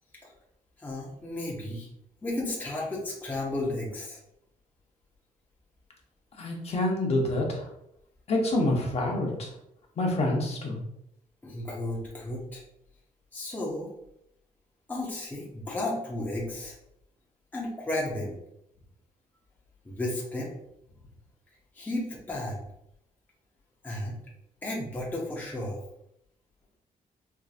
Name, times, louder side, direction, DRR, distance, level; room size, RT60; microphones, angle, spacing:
voice 1, 0.8-1.9 2.2-4.2 11.4-12.6 13.3-13.9 14.9-16.8 17.5-18.4 19.8-20.5 21.7-22.6 23.8-24.2 24.6-25.8, left 1 dB, 10° left, -4 dB, 0.6 m, -33 dB
voice 2, 6.4-7.7 8.3-9.5 10.0-10.8, left 1 dB, 45° left, 0 dB, 0.8 m, -27 dB
4.5 x 2.5 x 2.5 m, 0.78 s
cardioid pair, 155°, 15 cm